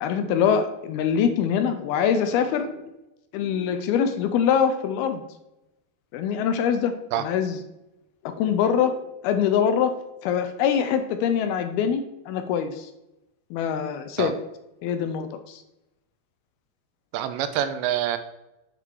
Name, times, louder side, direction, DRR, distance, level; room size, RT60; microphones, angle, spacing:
voice 1, 0.0-2.7 3.3-5.2 6.1-7.6 8.3-9.0 9.2-9.9 10.2-12.9 13.5-14.3 14.8-15.6, left 8 dB, 80° left, 8 dB, 2.3 m, -24 dB
voice 2, 17.1-18.2, right 11 dB, 85° right, 9 dB, 2.9 m, -26 dB
9.7 x 5.0 x 4.6 m, 0.92 s
omnidirectional pair, 5.0 m